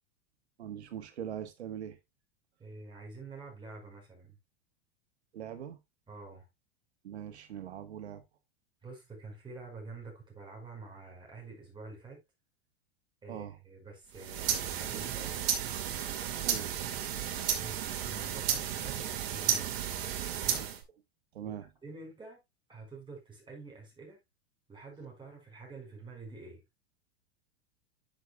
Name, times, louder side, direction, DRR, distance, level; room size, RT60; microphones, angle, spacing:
voice 1, 0.6-2.0 5.3-5.8 7.0-8.2 13.3-13.6 16.4-16.7 21.3-21.7, right 9 dB, 90° right, 1.4 m, -41 dB
voice 2, 2.6-4.4 6.1-6.5 8.8-12.2 13.2-15.4 17.1-19.8 20.4-20.8 21.4-21.5 21.8-22.4 22.7-24.2 24.7-26.6, right 3 dB, 15° right, 5.1 m, -48 dB
sound 1, 14.1-20.8, right 9 dB, 60° right, 2.2 m, -33 dB
10.5 x 6.6 x 2.3 m
hypercardioid pair, 120°, 32 cm